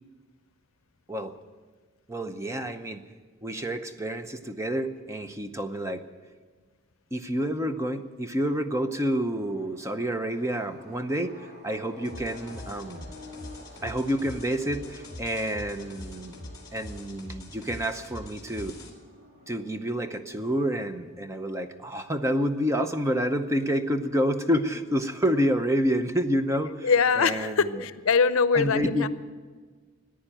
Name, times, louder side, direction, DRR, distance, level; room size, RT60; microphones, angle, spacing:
voice 1, 2.1-3.0 3.4-6.0 7.1-13.1 13.8-16.4 16.7-18.8 19.5-26.9 27.2-27.8 28.5-29.1, equal, 15° right, 8 dB, 0.7 m, -28 dB
sound 1, 8.9-27.7, left 2 dB, 50° right, 3.4 m, -52 dB
sound 2, 12.0-18.9, left 1 dB, 20° left, 2.4 m, -43 dB
voice 2, 26.8-29.1, left 5 dB, 75° left, 14 dB, 0.6 m, -23 dB
14.5 x 10.0 x 9.0 m, 1.5 s
head